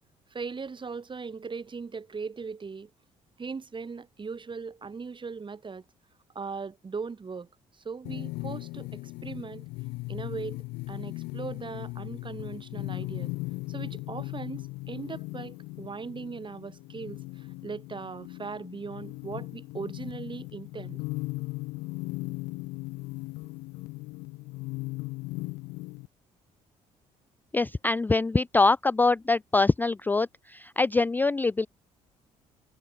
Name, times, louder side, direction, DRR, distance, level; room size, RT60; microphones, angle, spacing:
voice 1, 0.3-2.9 3.4-5.8 6.3-7.5 7.7-9.7 10.1-13.3 13.7-21.0, right 5 dB, 35° right, 4.0 m, -39 dB
sound 1, 8.1-26.1, left 23 dB, 85° left, 0.7 m, -38 dB
voice 2, 27.5-31.7, left 3 dB, 15° left, 0.3 m, -24 dB
supercardioid pair, 65°, 14 cm